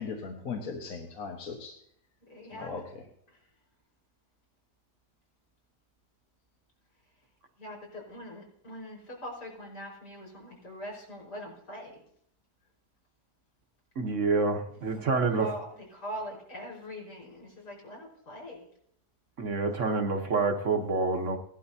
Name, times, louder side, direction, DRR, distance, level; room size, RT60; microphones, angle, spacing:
voice 1, 0.0-1.7 2.5-2.8, left 5 dB, 60° left, 2 dB, 1.6 m, -38 dB
voice 2, 2.3-2.8 3.3-3.4 7.6-12.0 14.7-14.8 15.4-15.6 15.9-18.7, equal, 80° left, -3 dB, 5.4 m, -42 dB
voice 3, 14.0-15.5 19.4-21.4, right 3 dB, 50° right, 3 dB, 1.4 m, -27 dB
17.5 x 11.5 x 2.8 m, 0.70 s
omnidirectional pair, 1.7 m